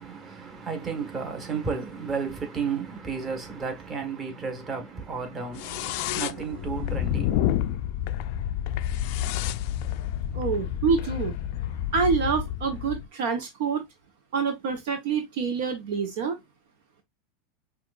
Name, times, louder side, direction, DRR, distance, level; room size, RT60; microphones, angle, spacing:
voice 1, 0.0-7.6, right 5 dB, 25° right, 1.5 m, -33 dB
sound 1, 5.5-13.1, left 11 dB, 60° left, 0.4 m, -29 dB
voice 2, 10.3-11.3 11.9-13.8 14.3-16.4, right 5 dB, 70° right, 1.0 m, -26 dB
5.7 x 2.5 x 2.4 m
hypercardioid pair, 100°, 0 cm